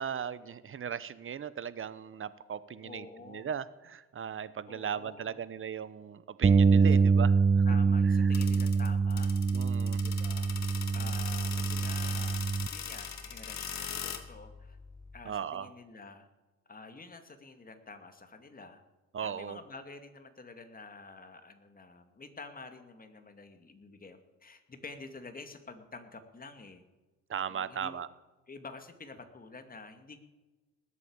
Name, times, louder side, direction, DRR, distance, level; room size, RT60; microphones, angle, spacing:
voice 1, 0.0-7.6 8.2-8.3 9.5-10.0 15.2-15.7 19.1-19.6 27.3-28.1, right 8 dB, 45° right, 16 dB, 1.0 m, -37 dB
voice 2, 2.8-3.5 4.7-5.4 6.9-7.0 7.6-9.3 10.0-10.5 10.9-12.4 12.7-14.8 15.1-16.3 16.7-18.8 19.2-26.8 27.5-28.0 28.5-30.2, left 3 dB, 30° left, 7 dB, 2.3 m, -49 dB
Bass guitar, 6.4-12.7, right 5 dB, 25° right, 0.5 m, -25 dB
sound 1, 8.3-15.2, left 7 dB, 65° left, 2.0 m, -41 dB
19.5 x 8.5 x 8.7 m, 1.2 s
cardioid pair, 90°, 30 cm